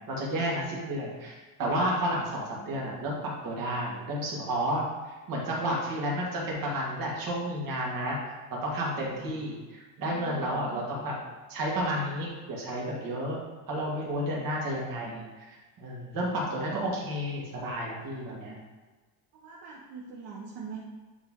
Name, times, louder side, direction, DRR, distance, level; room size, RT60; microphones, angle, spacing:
voice 1, 0.1-4.8 5.3-8.2 8.6-11.1 11.5-13.4 13.7-18.6, equal, 50° right, -3 dB, 1.9 m, -31 dB
voice 2, 10.0-10.9 19.3-20.8, right 3 dB, 65° right, -5 dB, 1.1 m, -44 dB
8.9 x 3.4 x 3.7 m, 1.3 s
cardioid pair, 165°, 42 cm